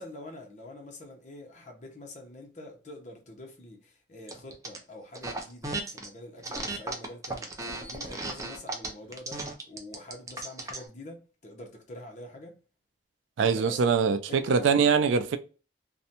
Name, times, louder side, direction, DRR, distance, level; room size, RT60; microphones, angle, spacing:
voice 1, 0.0-12.6 13.4-14.7, left 1 dB, 40° left, 0.7 m, -45 dB
sound 1, 4.3-4.8 5.1-6.1 6.4-10.9, right 2 dB, 15° right, 0.4 m, -35 dB
voice 2, 13.4-15.4, right 5 dB, 90° right, 0.4 m, -23 dB
2.5 x 2.1 x 2.7 m
head